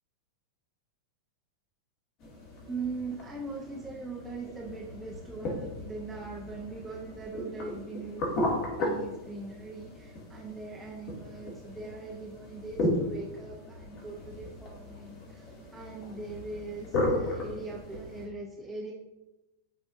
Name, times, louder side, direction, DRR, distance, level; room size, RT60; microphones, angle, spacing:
sound 1, 2.2-18.3, left 1 dB, 40° left, 2.2 m, -36 dB
voice 1, 2.7-18.9, right 3 dB, 10° right, -4 dB, 1.0 m, -41 dB
10.5 x 4.8 x 2.7 m, 1.0 s
figure-of-eight pair, 90°, 0 cm